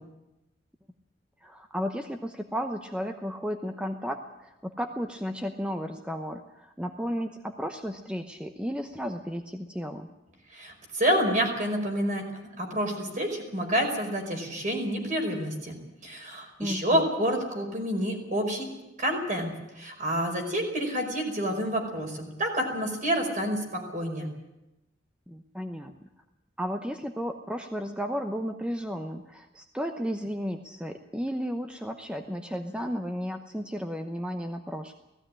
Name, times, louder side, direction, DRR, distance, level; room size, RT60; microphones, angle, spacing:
voice 1, 1.4-10.1 16.6-17.1 25.3-26.1 26.6-34.9, equal, 5° right, 5 dB, 0.9 m, -34 dB
voice 2, 10.5-12.2 12.6-15.8 16.0-18.7 19.0-24.3, equal, 45° right, 2 dB, 5.3 m, -28 dB
18.0 x 15.5 x 10.0 m, 0.95 s
head